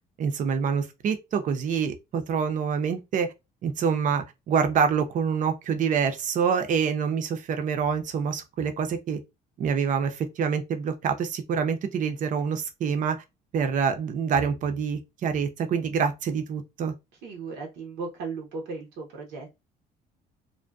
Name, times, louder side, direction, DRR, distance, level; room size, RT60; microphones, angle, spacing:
voice 1, 0.2-3.3 3.6-9.2 9.6-13.2 13.5-16.9, right 6 dB, 50° right, 0.5 m, -26 dB
voice 2, 17.2-19.6, right 4 dB, 90° right, 0.7 m, -36 dB
2.6 x 2.1 x 2.2 m
cardioid pair, 110°, 17 cm